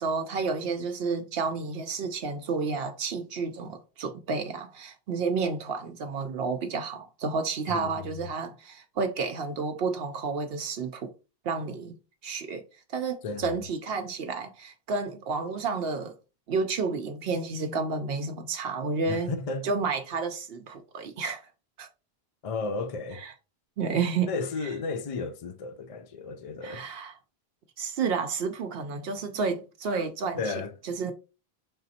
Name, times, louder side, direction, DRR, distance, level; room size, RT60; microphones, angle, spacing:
voice 1, 0.0-11.1 11.4-11.9 12.2-12.6 12.9-16.2 16.5-19.3 19.6-21.4 21.8-21.9 23.2-23.3 23.8-24.3 26.6-27.1 27.8-30.5 30.8-31.1, right 4 dB, 70° right, 0.8 m, -31 dB
voice 2, 7.7-8.0 13.2-13.5 19.1-19.7 22.4-23.2 24.3-26.9 30.4-30.7, left 4 dB, 55° left, 0.4 m, -33 dB
4.9 x 3.8 x 2.7 m
omnidirectional pair, 1.0 m